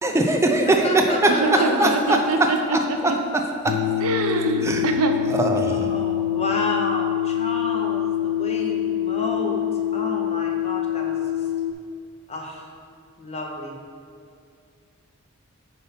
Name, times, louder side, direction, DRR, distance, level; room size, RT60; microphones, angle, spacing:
voice 1, 0.0-2.2 3.6-3.7 4.6-4.8 5.3-5.9, right 2 dB, 10° right, 3 dB, 0.3 m, -21 dB
voice 2, 0.7-1.9 5.7-9.6 9.9-11.2 12.3-12.7 13.2-13.8, left 1 dB, 30° left, 0 dB, 0.7 m, -30 dB
voice 3, 1.4-2.6 4.0-5.1, right 3 dB, 80° right, 5 dB, 0.6 m, -24 dB
sound 1, 3.7-11.7, left 12 dB, 85° left, 0.3 m, -25 dB
5.5 x 4.0 x 5.6 m, 2.3 s
head